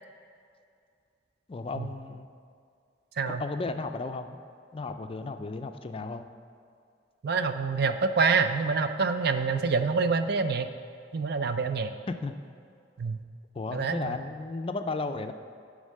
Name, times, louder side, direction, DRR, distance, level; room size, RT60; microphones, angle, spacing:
voice 1, 1.5-2.3 3.4-4.4 4.7-6.3 12.1-12.3 13.5-15.3, left 3 dB, 30° left, 8 dB, 0.4 m, -34 dB
voice 2, 7.2-10.7 11.1-11.9 13.0-13.2 13.7-14.2, right 4 dB, 60° right, 9 dB, 0.5 m, -26 dB
10.5 x 3.7 x 6.5 m, 2.3 s
head